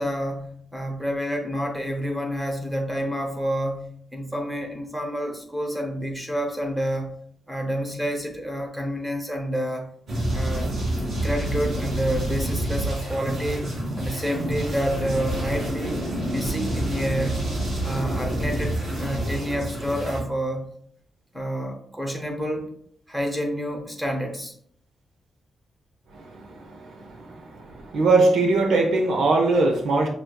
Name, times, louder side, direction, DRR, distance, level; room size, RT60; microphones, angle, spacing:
voice 1, 0.0-7.2 7.5-9.9 10.3-10.7 11.2-16.0 16.3-17.4 17.8-20.6 21.3-22.7 23.1-24.5, equal, 5° right, 1 dB, 0.8 m, -29 dB
sound 1, 10.1-20.2, right 1 dB, 55° right, 1.8 m, -28 dB
voice 2, 26.1-30.1, right 3 dB, 90° right, 2 dB, 0.7 m, -22 dB
6.0 x 2.7 x 2.3 m, 0.63 s
wide cardioid pair, 150°, 0 cm